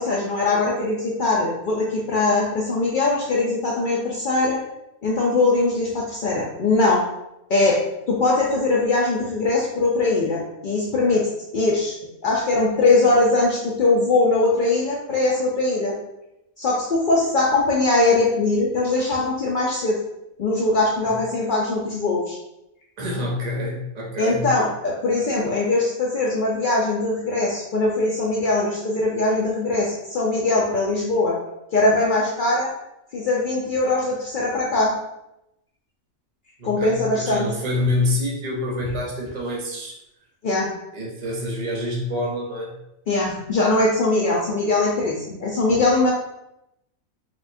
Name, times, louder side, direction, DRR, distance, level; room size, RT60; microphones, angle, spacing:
voice 1, 0.0-4.6 5.0-7.0 7.5-7.8 8.1-11.3 11.5-12.0 12.2-15.9 16.6-20.0 20.4-22.4 24.2-31.4 31.7-32.7 33.1-34.9 36.6-37.5 40.4-40.7 43.1-46.1, left 2 dB, 75° left, -4 dB, 0.4 m, -21 dB
voice 2, 23.0-24.5 36.6-40.0 40.9-42.8, left 1 dB, 40° right, -2 dB, 0.6 m, -27 dB
4.2 x 2.3 x 2.5 m, 0.86 s
omnidirectional pair, 1.5 m